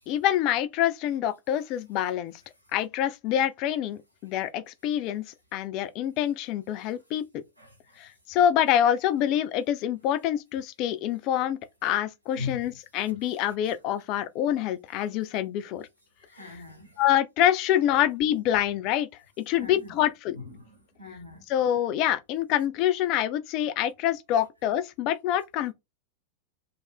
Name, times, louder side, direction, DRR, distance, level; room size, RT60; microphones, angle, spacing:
voice 1, 0.1-2.3 2.7-7.2 8.0-15.9 16.5-16.6 17.0-19.1 19.4-20.4 21.5-25.7, left 11 dB, 40° left, 0.3 m, -26 dB
voice 2, 16.3-16.9 19.6-19.9 20.3-21.4, left 4 dB, 90° right, 0.9 m, -39 dB
2.5 x 2.1 x 3.7 m
figure-of-eight pair, 90°, 0 cm